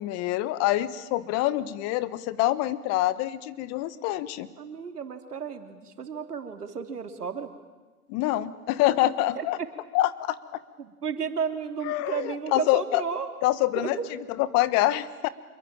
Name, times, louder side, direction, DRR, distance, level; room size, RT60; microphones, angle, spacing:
voice 1, 0.0-4.5 8.1-9.6 9.9-10.6 11.8-13.0 13.4-15.3, left 15 dB, 35° left, 16 dB, 1.4 m, -26 dB
voice 2, 4.6-7.5 9.4-9.7 10.8-13.3 13.8-14.1, right 6 dB, 90° right, 7 dB, 3.3 m, -33 dB
27.0 x 22.5 x 8.9 m, 1.2 s
hypercardioid pair, 125°, 45 cm